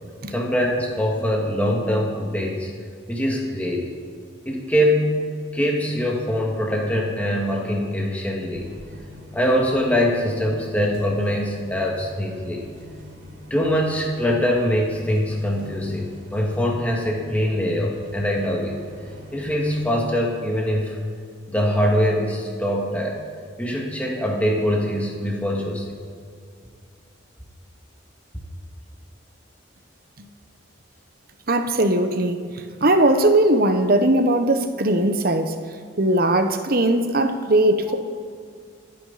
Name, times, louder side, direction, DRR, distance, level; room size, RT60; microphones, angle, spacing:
voice 1, 0.3-2.7 3.1-3.9 4.5-8.7 9.3-12.7 13.5-18.8 19.3-21.0 21.5-23.2 23.6-25.8, equal, 10° left, -2 dB, 1.9 m, -23 dB
sound 1, 8.5-19.8, left 1 dB, 70° right, 3.8 m, -43 dB
voice 2, 31.5-32.5 32.8-35.6 36.0-38.0, right 1 dB, 45° right, 7 dB, 1.1 m, -19 dB
26.5 x 9.5 x 4.2 m, 2.2 s
head